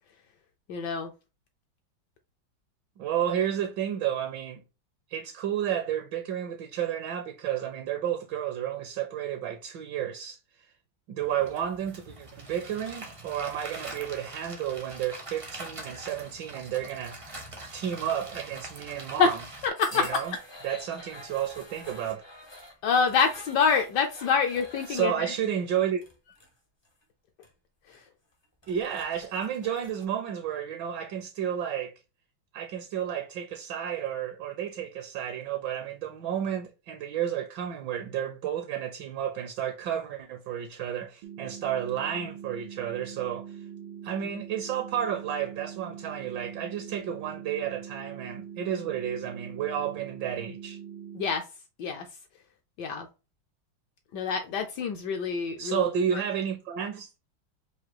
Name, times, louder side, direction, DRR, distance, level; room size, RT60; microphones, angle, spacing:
voice 1, 0.7-1.1 19.2-19.3 19.9-20.0 20.7-20.8 22.8-25.3 51.1-51.4 51.8-52.0 52.8-53.1 54.1-55.8, left 6 dB, 70° left, 1.0 m, -26 dB
voice 2, 3.0-4.6 5.1-10.4 11.1-17.3 17.7-19.4 19.9-20.3 20.6-22.2 24.9-26.0 28.7-31.9 32.5-43.6 44.0-50.8 55.6-57.1, right 9 dB, 70° right, 1.2 m, -31 dB
sound 1, 11.2-19.7, right 2 dB, 40° right, 0.4 m, -43 dB
sound 2, 19.8-25.1 26.0-26.5 26.8-27.0 27.4-27.5 27.9-28.0 28.4-30.0, left 1 dB, 40° left, 0.4 m, -47 dB
sound 3, 41.2-51.2, right 8 dB, 90° right, 1.4 m, -43 dB
4.9 x 2.6 x 2.9 m
omnidirectional pair, 2.3 m